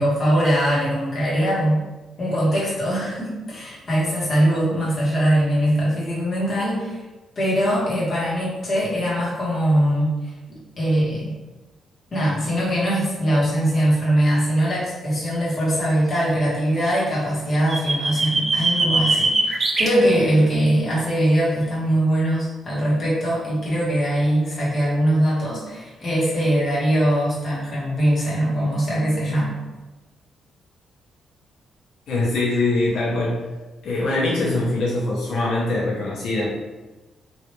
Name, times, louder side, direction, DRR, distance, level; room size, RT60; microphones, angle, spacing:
voice 1, 0.0-1.8 2.2-7.0 7.4-10.3 10.8-11.3 12.1-29.5, right 1 dB, 35° left, -7 dB, 1.1 m, -21 dB
sound 1, 17.5-19.9, right 2 dB, 30° right, 0.4 m, -21 dB
voice 2, 32.1-33.4 33.8-36.5, left 2 dB, 80° left, -6 dB, 0.8 m, -23 dB
3.2 x 2.5 x 2.9 m, 1.1 s
cardioid pair, 160°, 0 cm